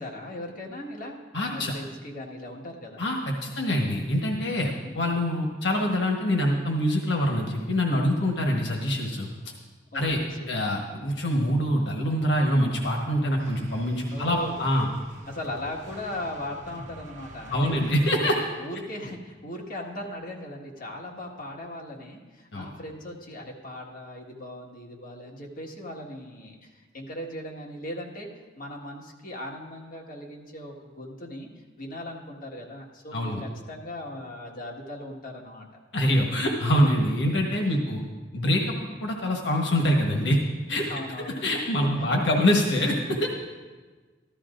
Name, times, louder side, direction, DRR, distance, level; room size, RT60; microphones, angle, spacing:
voice 1, 0.0-1.2 1.5-3.0 4.7-4.9 9.9-10.5 14.1-14.6 15.3-17.7 18.1-18.3 18.6-28.3 28.5-31.5 31.8-35.7 37.8-38.0 40.8-41.4 42.0-42.4, left 1 dB, 50° left, -2 dB, 1.7 m, -38 dB
voice 2, 1.3-1.7 3.0-9.3 9.9-10.2 10.5-14.9 17.5-18.4 22.5-22.7 33.1-33.4 35.9-38.0 38.3-40.4 40.7-40.8 41.4-43.3, equal, 85° left, 1 dB, 1.3 m, -25 dB
sound 1, 13.4-18.5, right 1 dB, 45° right, 1.2 m, -45 dB
14.0 x 13.0 x 2.6 m, 1.3 s
head